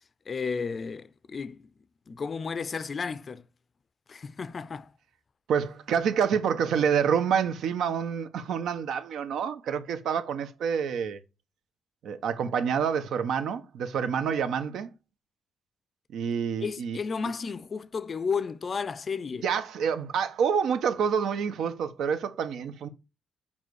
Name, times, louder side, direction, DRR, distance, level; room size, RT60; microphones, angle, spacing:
voice 1, 0.3-1.7 2.1-3.5 4.1-4.9 16.6-19.4, left 5 dB, 30° left, 0.5 m, -33 dB
voice 2, 5.5-11.2 12.0-14.9 16.1-17.0 19.4-22.9, right 7 dB, 85° right, 1.1 m, -27 dB
7.4 x 5.5 x 4.8 m
wide cardioid pair, 170°, 0 cm